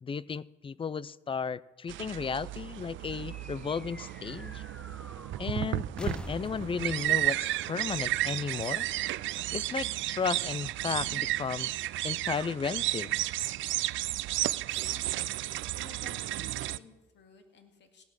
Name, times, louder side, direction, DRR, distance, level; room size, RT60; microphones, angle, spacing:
voice 1, 0.0-4.6 5.4-8.9 9.5-11.7 12.0-13.2, left 6 dB, 25° left, 21 dB, 0.4 m, -34 dB
sound 1, 1.9-16.8, right 15 dB, 75° right, 0.4 m, -33 dB
sound 2, 3.3-9.0, left 1 dB, 5° left, 0.7 m, -47 dB
voice 2, 14.6-15.4 15.7-18.0, left 6 dB, 65° left, 5 dB, 2.2 m, -54 dB
17.5 x 9.4 x 6.4 m, 1.1 s
cardioid pair, 90°, 20 cm